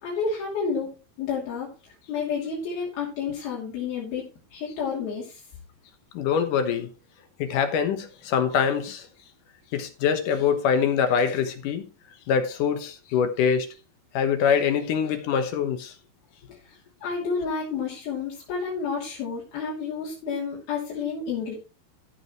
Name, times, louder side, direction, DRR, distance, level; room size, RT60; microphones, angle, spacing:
voice 1, 0.0-1.7 2.1-5.4 17.0-21.6, left 5 dB, 90° left, 4.8 m, -30 dB
voice 2, 6.1-6.9 7.4-9.1 9.7-11.8 12.3-13.7 14.1-15.9, left 7 dB, 70° left, 2.6 m, -24 dB
14.5 x 7.8 x 3.1 m
omnidirectional pair, 4.2 m